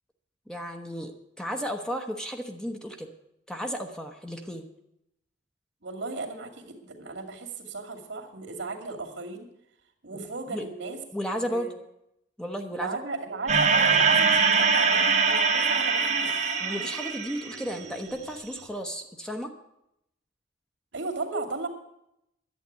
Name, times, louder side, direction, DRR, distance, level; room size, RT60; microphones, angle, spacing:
voice 1, 0.5-3.1 3.5-4.7 10.1-10.6 11.1-11.7 12.4-12.9 16.6-19.5, equal, 5° left, 4 dB, 1.0 m, -34 dB
voice 2, 5.8-9.5 10.0-11.0 11.3-11.7 12.7-16.6 20.9-21.7, right 3 dB, 75° right, 2 dB, 2.4 m, -35 dB
sound 1, 13.5-17.9, right 5 dB, 40° right, 1.7 m, -23 dB
11.5 x 8.2 x 9.4 m, 0.82 s
head